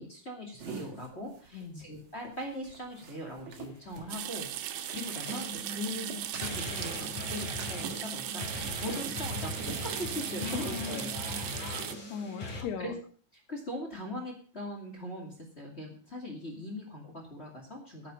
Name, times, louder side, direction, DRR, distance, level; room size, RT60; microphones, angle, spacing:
voice 1, 0.0-11.6 12.2-12.4 12.8-12.9 13.5-18.1, left 1 dB, 20° left, 0 dB, 1.9 m, -40 dB
sound 1, 0.6-5.1 5.4-10.1, right 5 dB, 50° right, 3.0 m, -46 dB
voice 2, 1.5-1.9 10.4-11.1 11.6-12.9, left 7 dB, 85° left, 8 dB, 3.4 m, -40 dB
sound 2, 4.1-11.9, right 12 dB, 85° right, 3.0 m, -38 dB
sound 3, 4.2-12.6, left 1 dB, 50° left, 5.2 m, -40 dB
9.2 x 9.2 x 6.9 m, 0.43 s
omnidirectional pair, 4.6 m